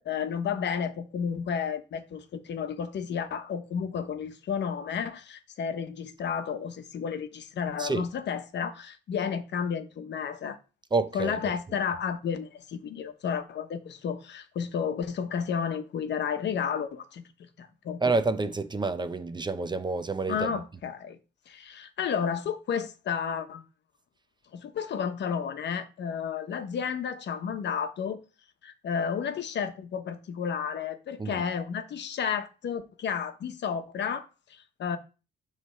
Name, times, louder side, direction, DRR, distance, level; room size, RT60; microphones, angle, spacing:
voice 1, 0.0-10.6 11.1-17.2 17.6-18.0 20.3-21.2 21.5-23.6 24.5-28.2 28.6-35.0, left 7 dB, 60° left, 1.0 m, -32 dB
voice 2, 10.9-11.4 18.0-20.6 31.2-31.4, right 3 dB, 20° right, 0.7 m, -28 dB
7.7 x 3.4 x 5.6 m
cardioid pair, 90°, 20 cm